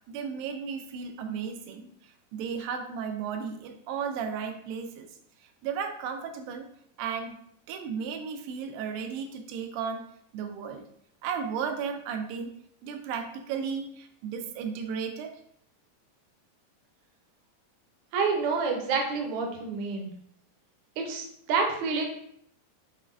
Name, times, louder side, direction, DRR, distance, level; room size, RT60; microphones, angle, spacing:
voice 1, 0.1-5.1 5.6-6.7 7.0-7.4 7.7-10.0 10.3-10.8 11.2-12.5 12.8-15.4, right 6 dB, 90° right, 5 dB, 2.4 m, -34 dB
voice 2, 18.1-20.1 21.0-22.1, right 4 dB, 75° right, 2 dB, 1.8 m, -28 dB
6.9 x 3.1 x 2.5 m, 0.68 s
omnidirectional pair, 3.9 m